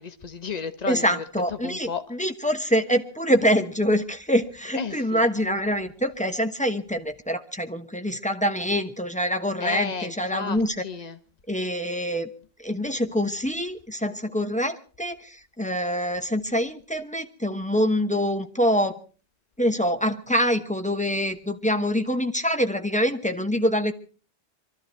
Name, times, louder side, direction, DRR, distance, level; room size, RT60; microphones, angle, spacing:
voice 1, 0.0-1.2 1.5-2.0 4.7-5.2 9.6-11.2, left 5 dB, 40° left, 1.2 m, -33 dB
voice 2, 0.9-10.8 11.5-12.3 12.6-18.9 19.6-23.9, equal, 5° left, 1.0 m, -25 dB
23.5 x 13.5 x 4.5 m
omnidirectional pair, 1.1 m